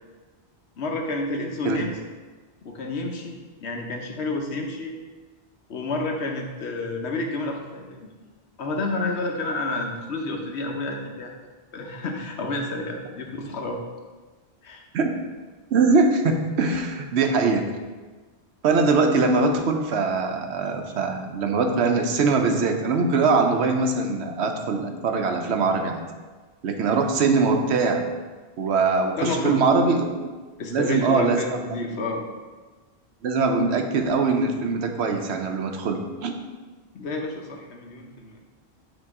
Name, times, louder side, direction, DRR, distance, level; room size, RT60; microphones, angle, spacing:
voice 1, 0.8-1.9 2.6-4.9 5.7-8.1 8.6-11.3 11.7-13.8 14.6-14.8 29.2-29.6 30.6-32.3 36.9-38.4, left 2 dB, 80° left, 2 dB, 1.1 m, -30 dB
voice 2, 15.7-17.7 18.6-26.0 26.6-28.0 28.6-30.3 30.7-31.5 33.2-36.4, right 4 dB, 85° right, 4 dB, 1.0 m, -22 dB
8.2 x 2.9 x 4.7 m, 1.3 s
omnidirectional pair, 1.1 m